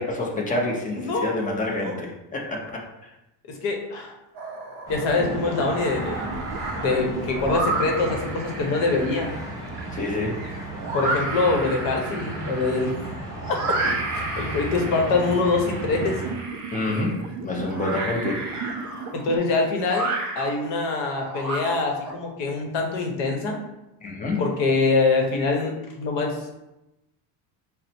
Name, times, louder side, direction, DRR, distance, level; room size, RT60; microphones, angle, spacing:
voice 1, 0.0-3.1 9.9-10.4 16.7-18.5 24.0-24.4, left 2 dB, 20° left, 0 dB, 0.6 m, -28 dB
voice 2, 0.9-1.3 1.8-2.0 3.5-4.1 4.9-6.4 6.7-9.3 10.9-12.9 13.8-16.2 19.1-23.6 24.4-26.5, left 3 dB, 65° left, 2 dB, 1.0 m, -24 dB
sound 1, 4.3-5.0 5.4-22.1, right 3 dB, 40° right, 0.8 m, -32 dB
sound 2, 4.9-16.3, right 2 dB, 5° right, 1.1 m, -35 dB
sound 3, 5.0-9.1 9.7-10.2 14.3-19.4, right 5 dB, 60° right, 0.5 m, -38 dB
4.0 x 2.1 x 4.2 m, 0.94 s
cardioid pair, 145°, 46 cm